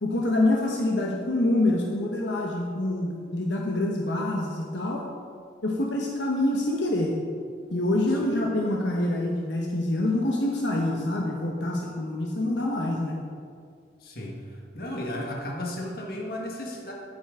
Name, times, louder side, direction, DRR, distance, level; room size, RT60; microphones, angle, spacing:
voice 1, 0.0-5.0 5.6-7.1 7.7-13.2, left 1 dB, 80° left, -1 dB, 1.1 m, -26 dB
voice 2, 14.0-16.9, left 1 dB, 55° left, 0 dB, 1.6 m, -34 dB
11.0 x 9.0 x 3.7 m, 2.2 s
head